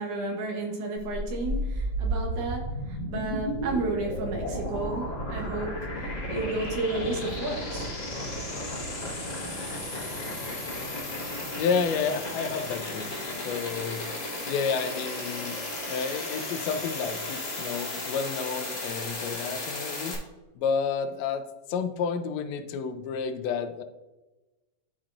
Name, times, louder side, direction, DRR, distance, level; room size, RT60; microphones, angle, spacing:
voice 1, 0.0-7.9, right 2 dB, 75° right, 1 dB, 2.5 m, -32 dB
sound 1, 1.0-20.2, left 1 dB, 45° left, 0.5 m, -34 dB
voice 2, 11.6-14.0 14.5-15.6 15.9-20.2 20.5-23.8, left 6 dB, 75° left, 7 dB, 1.6 m, -30 dB
11.5 x 4.2 x 2.5 m, 1.1 s
omnidirectional pair, 3.5 m